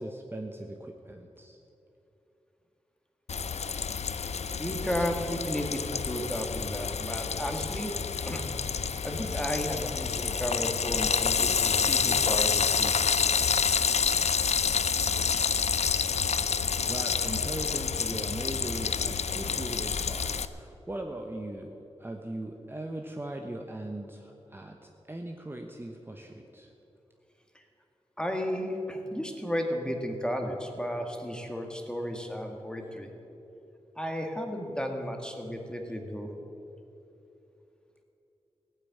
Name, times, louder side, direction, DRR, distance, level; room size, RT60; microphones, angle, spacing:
voice 1, 0.0-1.6 16.8-26.7, right 1 dB, 20° right, 2 dB, 1.0 m, -39 dB
Frying (food), 3.3-20.4, left 6 dB, 80° left, 0.6 m, -28 dB
voice 2, 4.6-7.9 8.2-8.5 9.0-13.2 27.6-27.7 28.2-33.1 34.0-36.3, equal, 5° left, 3 dB, 1.8 m, -33 dB
16.5 x 9.3 x 8.6 m, 2.9 s
wide cardioid pair, 100°, 11 cm